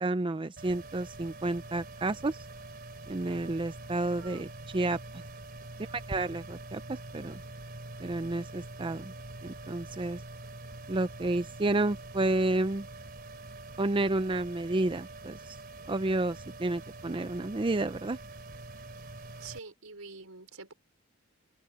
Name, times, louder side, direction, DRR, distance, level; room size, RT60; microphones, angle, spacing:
voice 1, 0.0-2.4 3.1-4.5 4.7-5.2 5.9-7.4 8.0-9.1 9.4-10.2 10.9-12.9 13.8-15.6 15.9-18.2, right 2 dB, 25° right, 0.5 m, -31 dB
sound 1, 0.6-19.6, right 2 dB, 45° right, 3.4 m, -45 dB
voice 2, 4.2-4.5 19.4-20.7, right 4 dB, 80° right, 5.0 m, -46 dB
head